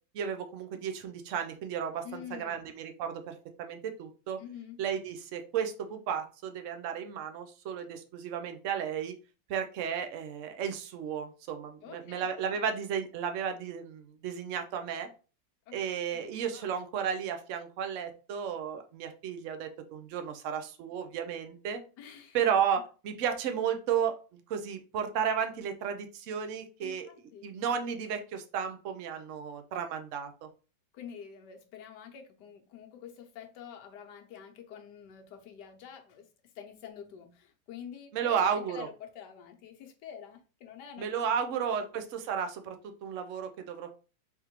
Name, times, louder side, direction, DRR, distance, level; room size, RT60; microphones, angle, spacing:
voice 1, 0.1-4.4 4.8-9.1 9.5-15.1 15.7-21.8 22.3-27.1 27.4-30.5 38.1-38.9 41.0-43.9, right 7 dB, 65° right, 0.7 m, -33 dB
voice 2, 2.0-2.7 4.4-4.8 11.8-12.6 15.7-15.8 16.1-16.7 22.0-22.5 26.8-27.5 30.9-41.2 41.9-42.0, left 8 dB, 75° left, 1.3 m, -47 dB
3.5 x 3.4 x 2.9 m
omnidirectional pair, 1.9 m